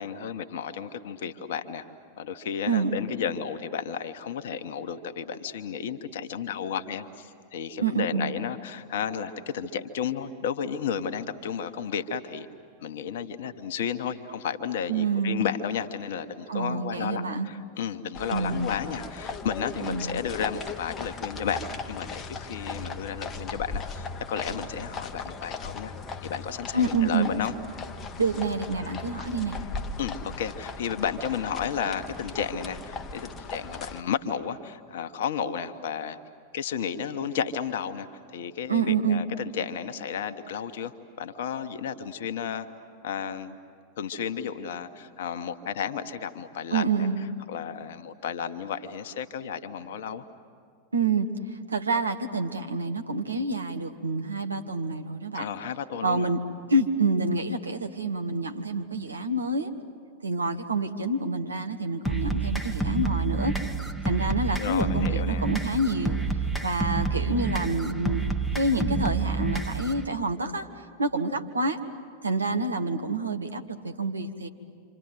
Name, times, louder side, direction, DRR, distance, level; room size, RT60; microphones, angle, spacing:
voice 1, 0.0-1.8 2.2-12.5 12.8-21.6 21.9-25.9 26.2-27.5 30.0-36.2 36.5-38.1 38.3-42.7 43.0-43.6 44.0-46.8 47.5-50.2 55.3-56.3 64.6-65.5, left 7 dB, 55° left, 9 dB, 1.2 m, -32 dB
voice 2, 7.8-8.3 14.9-15.4 16.5-17.5 18.3-18.7 19.8-20.2 26.7-27.3 28.2-29.6 38.7-39.2 46.7-47.2 50.9-51.3 51.7-55.5 56.0-56.4 56.7-59.7 60.2-63.5 64.0-66.2 66.6-68.2 68.5-71.8 72.2-74.5, right 3 dB, 75° right, 6 dB, 1.4 m, -27 dB
sound 1, 18.1-34.0, left 4 dB, 25° left, 1.1 m, -38 dB
sound 2, 62.1-70.0, right 3 dB, ahead, 1.3 m, -28 dB
27.5 x 26.0 x 8.0 m, 2.2 s
figure-of-eight pair, 90°, 0 cm